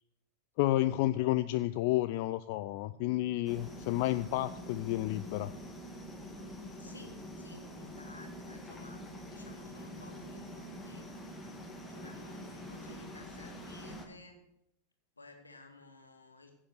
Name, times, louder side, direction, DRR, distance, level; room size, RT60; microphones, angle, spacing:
voice 1, 0.6-5.5, left 16 dB, 50° left, 13 dB, 0.4 m, -31 dB
sound 1, 3.5-14.1, equal, 10° left, 2.3 m, -46 dB
voice 2, 6.7-11.1 11.9-14.4 15.2-16.5, left 2 dB, 80° left, 4 dB, 2.4 m, -55 dB
15.5 x 7.5 x 6.6 m, 0.81 s
figure-of-eight pair, 90°, 0 cm